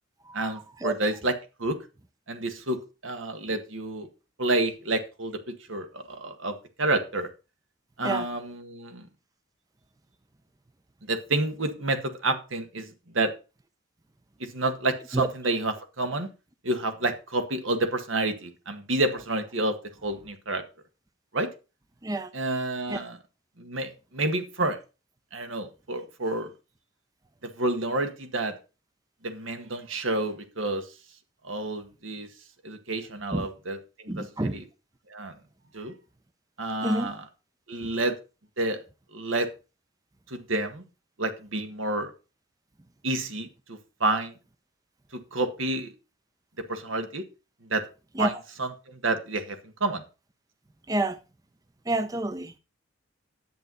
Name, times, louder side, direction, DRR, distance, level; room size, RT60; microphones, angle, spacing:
voice 1, 0.3-1.8 2.3-4.1 4.4-7.3 8.0-9.1 11.0-13.3 14.4-16.3 16.6-20.6 21.3-21.5 22.3-23.2 23.6-24.8 25.3-26.5 27.4-28.5 29.2-30.9 31.4-32.3 32.6-34.6 35.1-35.4 35.7-35.9 36.6-37.2 37.7-38.2 38.6-38.8 39.1-39.5 40.3-40.8 41.2-42.1 43.0-44.3 45.1-45.9 46.6-47.2 47.6-47.9 48.2-48.3 48.6-50.0, right 2 dB, 85° right, 1.8 m, -29 dB
voice 2, 34.1-34.6 36.8-37.1 37.8-37.9 48.2-48.3 50.9-51.2 51.9-52.6, right 2 dB, 20° right, 0.5 m, -28 dB
10.5 x 8.0 x 4.0 m
head